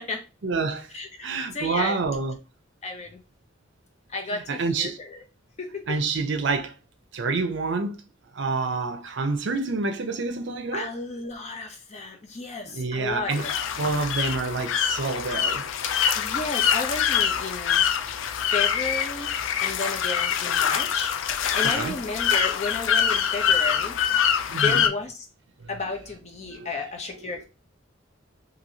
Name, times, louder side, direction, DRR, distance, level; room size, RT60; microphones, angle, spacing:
voice 1, 0.4-0.9 1.2-2.3 4.5-5.0 5.9-6.7 7.1-8.0 8.3-10.9 12.7-13.4 13.8-15.6 21.6-21.9 24.5-24.9 26.5-26.7, right 3 dB, 65° right, 0.5 m, -27 dB
voice 2, 0.9-2.0 2.8-3.2 4.1-5.2 5.6-6.0 10.7-13.5 16.1-17.9 18.3-19.3 19.6-21.1 21.5-24.0 24.5-25.3 25.7-27.4, left 3 dB, 35° left, 0.7 m, -33 dB
sound 1, 13.3-24.9, left 8 dB, 80° left, 0.4 m, -24 dB
3.0 x 2.7 x 2.6 m
head